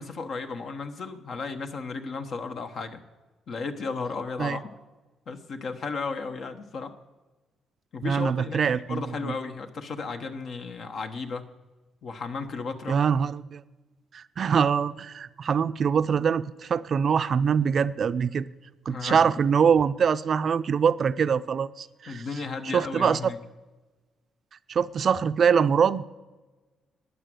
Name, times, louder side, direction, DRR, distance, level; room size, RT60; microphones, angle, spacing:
voice 1, 0.0-3.0 3.5-4.7 5.3-6.9 7.9-8.6 8.9-11.5 12.0-13.0 18.9-19.3 22.1-23.4, left 4 dB, 60° left, 1.2 m, -34 dB
voice 2, 8.0-9.3 12.9-13.6 14.1-18.5 18.9-22.2 22.7-23.3 24.7-26.0, right 7 dB, 50° right, 0.5 m, -24 dB
12.5 x 9.6 x 7.8 m
cardioid pair, 90°, 0 cm